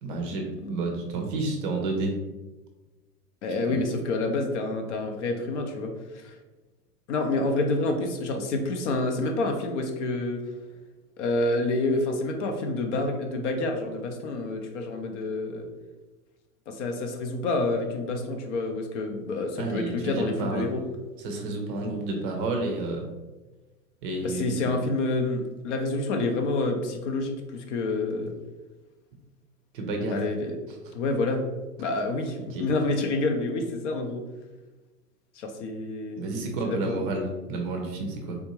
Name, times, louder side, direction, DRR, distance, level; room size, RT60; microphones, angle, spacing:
voice 1, 0.0-2.1 19.6-20.7 21.2-23.0 24.0-24.7 29.7-30.2 32.5-32.7 36.2-38.4, right 2 dB, 35° right, 2 dB, 0.5 m, -30 dB
voice 2, 3.4-6.3 7.1-10.4 11.2-15.7 16.7-20.8 24.2-28.3 30.1-30.6 30.9-31.4 31.8-34.3 35.4-36.2 36.6-37.0, left 2 dB, 50° left, 4 dB, 0.6 m, -28 dB
3.5 x 2.6 x 2.9 m, 1.2 s
hypercardioid pair, 110°, 47 cm